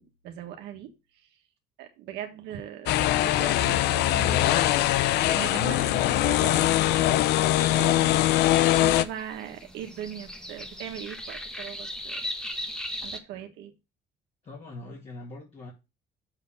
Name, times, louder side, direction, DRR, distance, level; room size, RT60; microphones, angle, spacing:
voice 1, 0.0-1.4 1.8-12.2 13.0-13.7, right 10 dB, 90° right, 4 dB, 1.6 m, -40 dB
sound 1, 2.9-9.0, left 14 dB, 80° left, 0.5 m, -22 dB
sound 2, 7.0-13.2, left 1 dB, 5° left, 1.1 m, -39 dB
voice 2, 14.4-15.7, left 2 dB, 40° left, -3 dB, 2.4 m, -42 dB
7.3 x 4.3 x 6.5 m, 0.27 s
cardioid pair, 110°, 17 cm